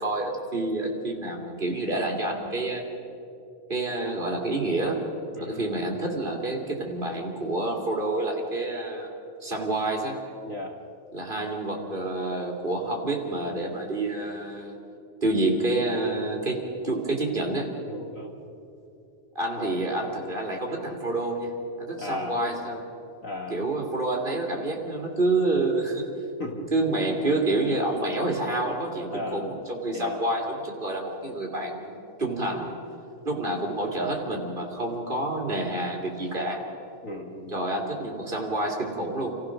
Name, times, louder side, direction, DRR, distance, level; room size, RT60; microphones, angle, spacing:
voice 1, 0.0-2.8 3.7-5.0 5.4-9.1 9.4-10.2 11.1-14.8 15.2-17.7 19.3-21.5 21.8-22.8 23.5-26.1 26.6-32.7 33.2-36.6 37.5-39.4, right 2 dB, 20° right, 1 dB, 2.3 m, -28 dB
voice 2, 5.3-5.8 10.4-10.8 17.9-18.3 19.5-19.8 22.0-22.4 23.2-23.7 26.4-26.7 29.1-29.6 29.9-30.2 37.0-37.6, left 2 dB, 80° left, 1 dB, 0.7 m, -36 dB
28.0 x 15.0 x 6.4 m, 2.7 s
omnidirectional pair, 3.5 m